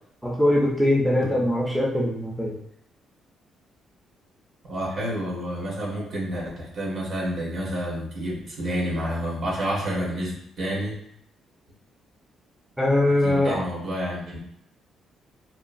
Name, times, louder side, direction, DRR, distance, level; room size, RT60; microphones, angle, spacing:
voice 1, 0.2-2.6 12.8-13.6, left 1 dB, ahead, -3 dB, 0.6 m, -22 dB
voice 2, 4.7-11.0 13.2-14.4, equal, 60° right, -4 dB, 1.2 m, -29 dB
3.0 x 2.3 x 2.5 m, 0.72 s
cardioid pair, 90°, 0 cm